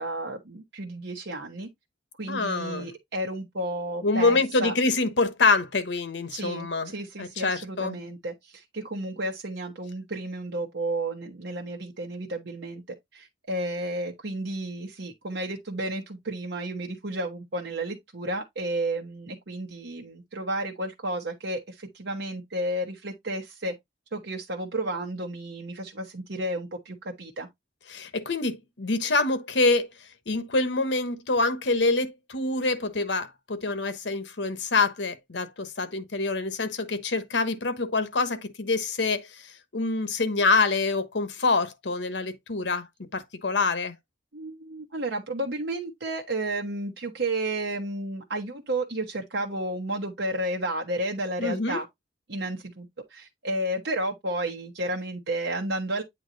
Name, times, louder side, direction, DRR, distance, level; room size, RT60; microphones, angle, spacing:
voice 1, 0.0-1.7 2.2-4.7 6.3-12.8 13.1-23.7 24.1-27.5 44.3-51.9 52.3-56.0, right 1 dB, 65° right, 1.0 m, -32 dB
voice 2, 2.3-2.9 4.0-6.9 7.2-8.0 27.9-29.9 30.3-42.9 43.1-43.9 51.4-51.8, left 3 dB, 75° left, 1.1 m, -26 dB
8.6 x 3.0 x 3.9 m
head